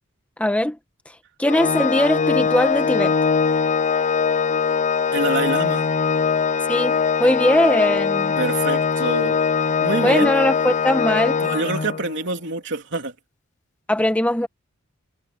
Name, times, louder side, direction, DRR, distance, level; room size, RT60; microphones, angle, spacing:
voice 1, 0.4-0.8 1.4-3.1 6.7-8.3 10.0-11.4 13.9-14.5, left 1 dB, 5° left, 1.2 m, -20 dB
Organ, 1.4-12.2, left 6 dB, 35° left, 0.5 m, -21 dB
voice 2, 5.1-5.9 8.4-9.4 9.8-10.3 11.4-13.1, right 3 dB, 60° right, 3.4 m, -26 dB
head